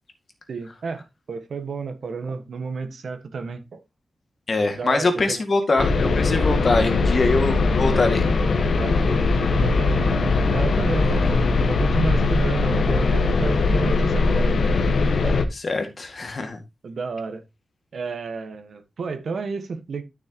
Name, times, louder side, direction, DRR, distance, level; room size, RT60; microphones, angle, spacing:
voice 1, 0.5-3.8 4.8-5.4 8.8-14.6 15.2-15.4 16.8-17.4 17.9-20.0, right 4 dB, 65° right, 1.5 m, -31 dB
voice 2, 4.5-8.3 11.0-11.2 15.5-16.6, left 3 dB, 40° left, 2.1 m, -23 dB
sound 1, 5.8-15.4, left 3 dB, 65° left, 1.4 m, -20 dB
12.5 x 6.5 x 3.0 m
wide cardioid pair, 130°, 0 cm